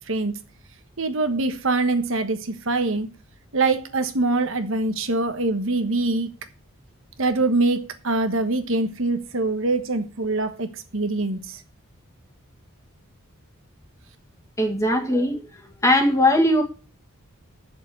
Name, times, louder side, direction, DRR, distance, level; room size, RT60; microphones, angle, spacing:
voice 1, 0.1-0.4 1.0-3.1 3.5-6.3 7.2-11.6, right 2 dB, 60° right, 1.3 m, -24 dB
voice 2, 14.6-15.4 15.8-16.6, left 1 dB, 15° left, 1.8 m, -19 dB
8.0 x 6.9 x 7.8 m
head